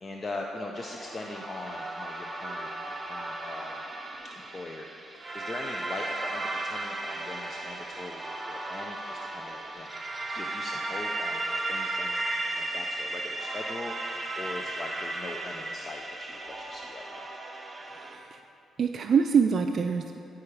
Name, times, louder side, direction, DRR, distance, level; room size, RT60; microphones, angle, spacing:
voice 1, 0.0-3.8 4.3-4.9 5.3-9.9 10.3-12.2 12.5-17.3, left 2 dB, 35° left, 1 dB, 0.5 m, -41 dB
sound 1, 0.8-18.2, right 2 dB, 20° right, 0.8 m, -35 dB
voice 2, 17.8-18.4 18.8-20.2, right 6 dB, 50° right, 6 dB, 0.3 m, -25 dB
11.5 x 4.8 x 4.8 m, 2.7 s
cardioid pair, 90°, 0 cm